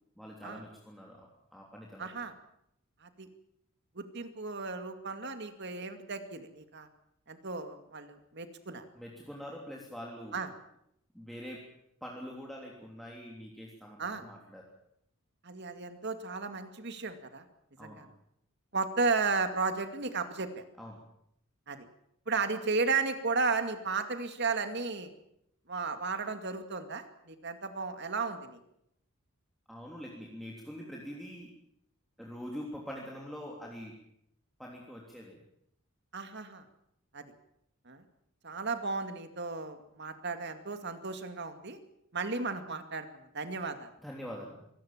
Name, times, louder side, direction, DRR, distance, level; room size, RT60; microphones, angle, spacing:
voice 1, 0.2-2.2 8.9-10.4 11.1-11.6 12.0-14.6 17.8-18.0 20.8-21.0 29.7-31.5 32.2-33.9 34.6-35.4 44.0-44.7, equal, ahead, -3 dB, 3.2 m, -44 dB
voice 2, 2.0-2.3 3.0-3.3 3.9-6.9 7.3-8.8 10.3-10.5 14.0-14.2 15.4-17.4 17.8-18.1 18.7-20.6 21.7-21.9 22.3-25.1 25.7-28.6 36.1-36.6 37.1-37.2 37.9-38.0 38.4-41.8 42.1-43.9, right 4 dB, 55° right, 8 dB, 2.3 m, -34 dB
24.0 x 18.5 x 7.4 m, 0.76 s
head